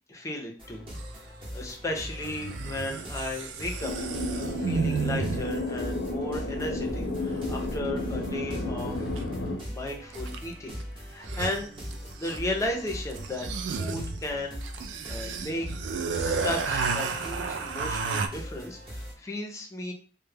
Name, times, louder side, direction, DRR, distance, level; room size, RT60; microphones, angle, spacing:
voice 1, 0.1-0.8 1.5-3.9 4.3-9.1 9.4-11.7 12.1-14.6 15.1-15.7 16.1-19.9, left 1 dB, 15° left, 1 dB, 0.4 m, -35 dB
sound 1, 0.6-19.1, equal, 30° right, 0.7 m, -40 dB
sound 2, 1.0-1.1 2.2-5.7 9.2-9.3 10.1-10.5 10.8-10.9 11.1-12.6 13.1-18.3, right 5 dB, 75° right, 0.3 m, -32 dB
sound 3, 3.8-9.6, left 2 dB, 80° left, 0.5 m, -32 dB
2.2 x 2.0 x 3.2 m, 0.42 s
head